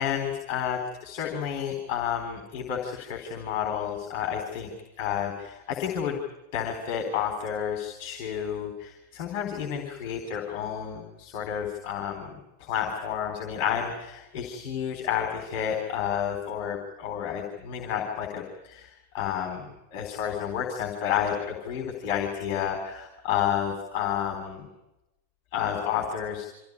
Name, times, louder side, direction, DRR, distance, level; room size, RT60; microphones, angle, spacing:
voice 1, 0.0-4.7 5.0-6.2 6.5-12.3 12.6-24.7 25.5-26.5, left 9 dB, 45° left, 2 dB, 3.7 m, -30 dB
25.0 x 15.5 x 9.7 m, 0.93 s
figure-of-eight pair, 90°, 0 cm